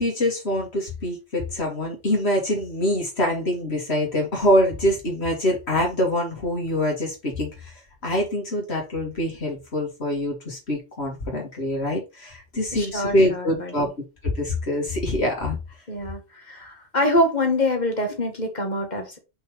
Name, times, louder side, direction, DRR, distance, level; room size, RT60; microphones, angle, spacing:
voice 1, 0.0-13.9 14.3-15.8, left 1 dB, 70° left, -1 dB, 2.2 m, -25 dB
voice 2, 12.7-13.9 15.9-19.2, left 1 dB, 40° left, 4 dB, 1.8 m, -25 dB
5.5 x 4.2 x 4.8 m, 0.27 s
omnidirectional pair, 1.1 m